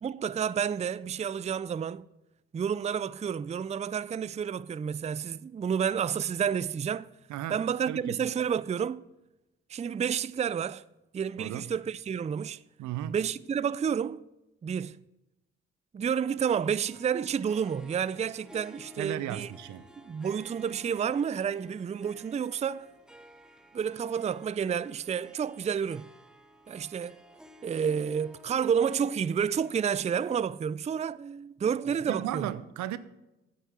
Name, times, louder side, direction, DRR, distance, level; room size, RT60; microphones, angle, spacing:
voice 1, 0.0-2.0 2.5-7.1 7.5-9.0 9.7-10.8 11.1-12.6 13.1-14.2 14.6-15.0 15.9-19.5 20.0-22.9 23.7-26.1 26.7-27.2 27.6-32.5, right 7 dB, 25° right, 0.4 m, -30 dB
voice 2, 7.3-7.6 7.9-8.2 11.4-11.7 12.8-13.2 19.0-19.9 32.1-33.0, right 12 dB, 80° right, 0.6 m, -35 dB
Harp, 16.4-30.4, equal, 5° right, 1.2 m, -54 dB
9.2 x 8.0 x 5.8 m
supercardioid pair, 50°, 29 cm